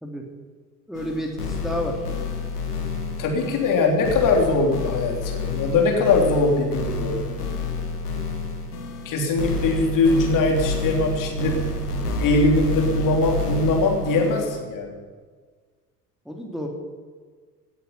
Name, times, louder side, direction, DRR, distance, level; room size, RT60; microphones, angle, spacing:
voice 1, 0.9-2.0 16.2-16.7, equal, ahead, -1 dB, 2.8 m, -30 dB
sound 1, 1.0-14.6, left 2 dB, 75° left, 2.3 m, -29 dB
voice 2, 3.2-7.4 9.1-11.6 12.2-15.0, left 3 dB, 40° left, 1 dB, 3.4 m, -21 dB
17.0 x 8.3 x 8.3 m, 1.5 s
figure-of-eight pair, 65°, 46 cm